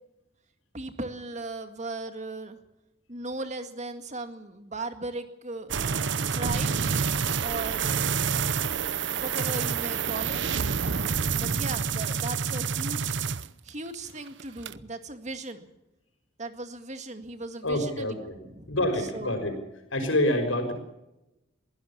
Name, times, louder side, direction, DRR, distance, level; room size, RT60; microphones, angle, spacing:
voice 1, 0.7-2.6 3.1-5.7 6.3-7.0 7.4-8.0 9.1-10.4 11.4-13.2 13.6-15.7 16.4-19.4, right 2 dB, 35° right, 8 dB, 2.0 m, -37 dB
sound 1, 5.7-13.9 14.3-14.7, right 6 dB, 60° right, 0.8 m, -28 dB
voice 2, 17.6-18.4 18.7-19.6 19.9-20.7, left 1 dB, 85° left, 6 dB, 6.0 m, -26 dB
22.5 x 16.5 x 7.3 m, 0.93 s
head